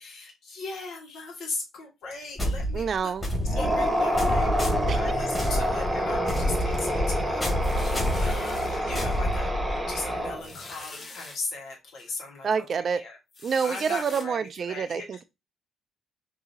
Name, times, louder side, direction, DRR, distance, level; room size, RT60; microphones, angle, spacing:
voice 1, 0.0-2.9 3.5-4.6 4.9-9.5 9.9-13.2 13.6-15.0, left 3 dB, 75° left, 1.5 m, -38 dB
sound 1, 2.4-10.0, equal, 20° left, 2.2 m, -28 dB
voice 2, 2.7-3.2 4.9-5.0 12.4-13.0 13.4-15.2, right 6 dB, 50° right, 0.4 m, -27 dB
sound 2, 3.4-10.6, equal, 10° right, 1.1 m, -28 dB
sound 3, 7.6-8.7 9.3-9.5 9.8-9.9 10.4-11.4 12.0-12.1 13.3-14.2, left 3 dB, 45° left, 1.0 m, -43 dB
4.8 x 2.7 x 2.8 m
cardioid pair, 90°, 0 cm